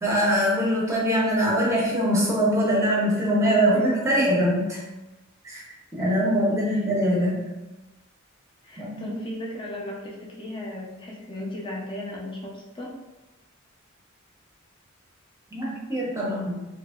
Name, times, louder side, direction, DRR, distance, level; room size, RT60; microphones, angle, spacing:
voice 1, 0.0-4.7 5.4-5.6 5.9-7.4 8.8-9.4 15.5-16.6, equal, 15° right, -5 dB, 0.7 m, -23 dB
voice 2, 3.7-4.3 6.5-6.8 8.6-12.9, left 1 dB, 25° left, -3 dB, 0.5 m, -36 dB
2.9 x 2.5 x 2.3 m, 1.0 s
head